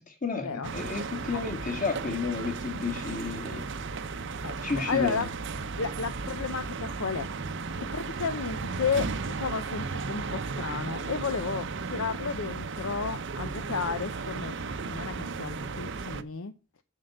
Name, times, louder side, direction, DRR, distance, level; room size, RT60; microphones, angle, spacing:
voice 1, 0.1-3.6 4.6-5.3, left 4 dB, 35° left, 2.2 m, -32 dB
sound 1, 0.6-16.2, right 4 dB, 55° right, 0.7 m, -35 dB
voice 2, 4.4-5.3 5.8-7.3 7.8-14.5 14.8-16.5, left 5 dB, 70° left, 0.6 m, -33 dB
7.7 x 5.7 x 7.8 m
head